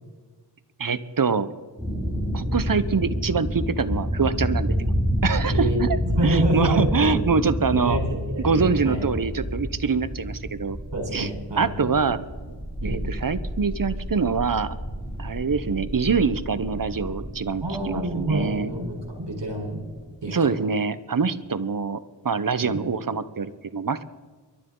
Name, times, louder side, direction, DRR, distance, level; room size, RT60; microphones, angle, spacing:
voice 1, 0.8-1.5 2.3-4.7 5.2-6.0 6.2-8.0 8.4-10.8 11.1-11.3 11.6-12.3 12.8-14.8 15.2-18.7 20.3-24.0, right 5 dB, 50° right, 14 dB, 0.9 m, -25 dB
sound 1, 1.8-20.1, equal, 5° right, 6.3 m, -29 dB
voice 2, 5.5-7.5 7.7-9.0 10.9-11.9 12.8-13.0 17.6-19.8 20.2-20.5 22.6-22.8, right 1 dB, 75° right, 1 dB, 4.6 m, -27 dB
23.5 x 12.0 x 3.9 m, 1.4 s
wide cardioid pair, 50°, 44 cm